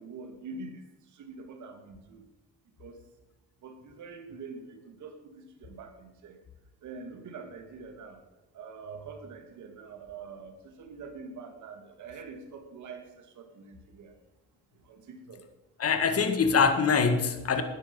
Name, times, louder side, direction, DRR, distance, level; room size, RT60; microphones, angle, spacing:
voice 1, 0.0-2.2 2.8-3.0 3.6-6.4 6.8-8.2 8.5-14.1 14.8-15.5, right 4 dB, 75° right, 6 dB, 2.4 m, -45 dB
voice 2, 15.8-17.6, left 5 dB, 50° left, 8 dB, 1.8 m, -24 dB
13.5 x 10.0 x 5.5 m, 1.1 s
cardioid pair, 90°, 30 cm